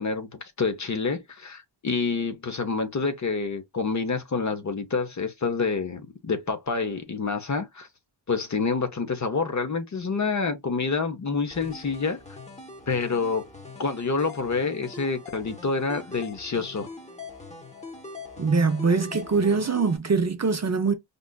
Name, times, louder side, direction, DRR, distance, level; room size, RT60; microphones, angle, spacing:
voice 1, 0.0-7.9 8.3-12.4 12.9-13.4 13.8-16.9, left 4 dB, 40° left, 0.7 m, -28 dB
sound 1, 11.5-20.0, left 3 dB, 15° left, 0.8 m, -42 dB
voice 2, 18.4-20.9, right 4 dB, 40° right, 0.5 m, -23 dB
5.1 x 2.4 x 2.2 m
wide cardioid pair, 175°, 46 cm